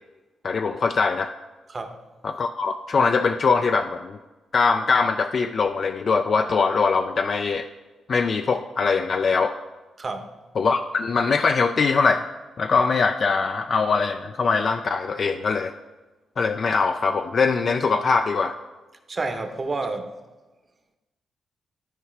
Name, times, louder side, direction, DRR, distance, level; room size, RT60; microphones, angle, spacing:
voice 1, 0.4-1.3 2.2-4.2 4.5-7.7 8.1-9.5 10.6-12.2 12.6-15.7 16.4-18.5, left 4 dB, 50° left, 7 dB, 0.3 m, -22 dB
voice 2, 10.0-10.3 19.1-20.1, right 3 dB, 35° right, 7 dB, 0.9 m, -29 dB
12.5 x 4.7 x 3.3 m, 1.2 s
cardioid pair, 85°, 0 cm